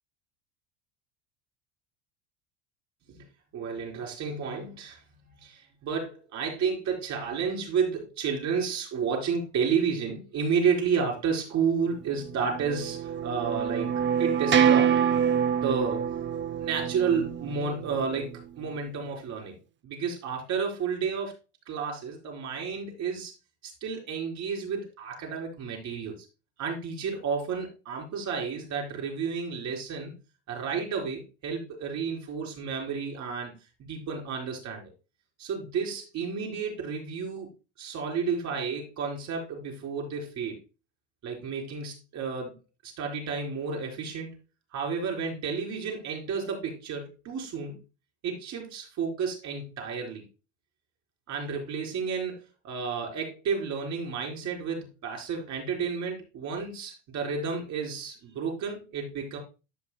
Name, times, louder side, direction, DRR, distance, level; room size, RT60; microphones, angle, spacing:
voice 1, 3.5-5.0 5.4-15.0 15.6-16.0 16.6-19.6 19.8-21.3 21.7-23.3 23.6-26.2 26.6-30.2 30.5-33.5 33.9-34.9 35.4-37.5 37.8-40.6 41.2-42.5 42.8-44.3 44.7-47.8 48.2-50.2 51.3-59.4, right 6 dB, 50° right, 0 dB, 4.0 m, -31 dB
sound 1, 12.0-18.4, right 8 dB, 30° right, 0.9 m, -26 dB
13.5 x 5.5 x 2.3 m, 0.30 s
hypercardioid pair, 85°, 35 cm